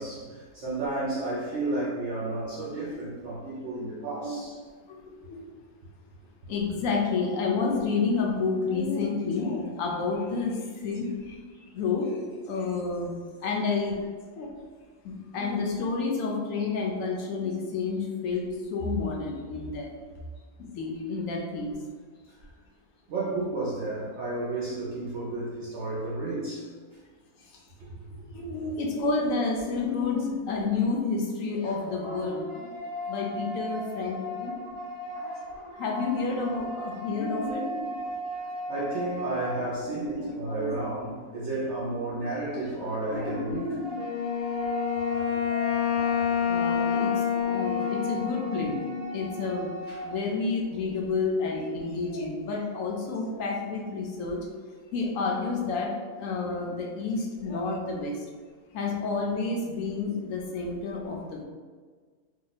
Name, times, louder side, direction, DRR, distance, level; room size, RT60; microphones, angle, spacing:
voice 1, 0.0-4.6 23.1-26.7 38.7-43.8 49.9-50.0, right 2 dB, 60° right, -7 dB, 0.8 m, -32 dB
voice 2, 4.9-5.4 6.5-11.4 11.7-12.2 12.5-13.1 13.4-14.0 14.4-14.5 15.0-19.9 20.6-21.8 27.4-27.6 28.3-32.8 33.1-34.6 35.8-37.9 39.6-39.7 40.1-40.8 43.1-44.0 46.4-48.8 49.1-49.7 50.0-54.5 54.9-58.3 58.7-61.4, left 4 dB, 70° left, -1 dB, 0.9 m, -30 dB
sound 1, 31.5-40.2 42.5-50.3, equal, 35° left, 0.4 m, -38 dB
Wind instrument woodwind instrument, 43.9-49.4, left 7 dB, 90° left, 0.5 m, -28 dB
2.9 x 2.1 x 3.9 m, 1.5 s
omnidirectional pair, 1.6 m